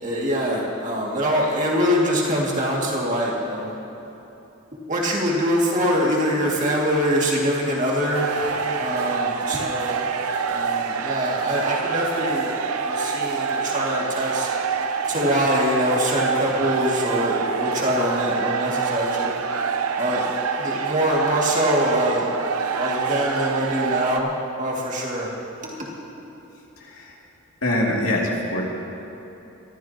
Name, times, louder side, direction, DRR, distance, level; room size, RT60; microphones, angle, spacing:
voice 1, 0.0-3.7 4.9-10.0 10.5-12.5 12.8-14.5 15.1-19.3 20.0-20.3 20.6-22.3 22.8-25.3 25.8-25.9, equal, 35° right, -3 dB, 2.4 m, -24 dB
sound 1, 8.1-24.2, right 5 dB, 85° right, 0.7 m, -26 dB
voice 2, 26.8-27.1 27.6-28.6, left 1 dB, 70° left, -4 dB, 2.7 m, -23 dB
24.0 x 14.0 x 3.0 m, 3.0 s
head